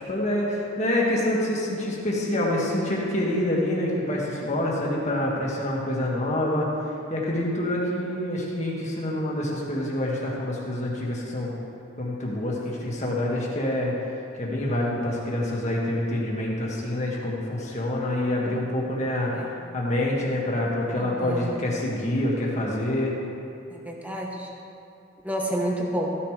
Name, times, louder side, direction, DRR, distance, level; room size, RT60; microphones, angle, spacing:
voice 1, 0.1-11.5 12.0-23.1, left 1 dB, 35° left, -4 dB, 2.0 m, -27 dB
voice 2, 20.9-21.6 23.7-24.5 25.2-26.1, right 1 dB, 5° right, -1 dB, 1.1 m, -30 dB
15.0 x 11.0 x 3.4 m, 2.7 s
head